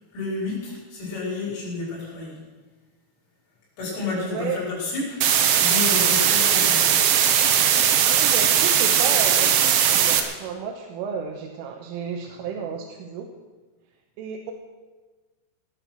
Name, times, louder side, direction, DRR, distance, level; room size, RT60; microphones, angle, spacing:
voice 1, 0.1-2.4 3.8-5.2 5.6-7.1, left 3 dB, 85° left, -6 dB, 8.2 m, -30 dB
voice 2, 4.3-4.6 8.0-13.3 14.2-14.5, right 6 dB, 85° right, 1 dB, 3.7 m, -32 dB
sound 1, 5.2-10.2, right 9 dB, 70° right, 3.1 m, -19 dB
18.5 x 11.0 x 6.2 m, 1.3 s
omnidirectional pair, 5.6 m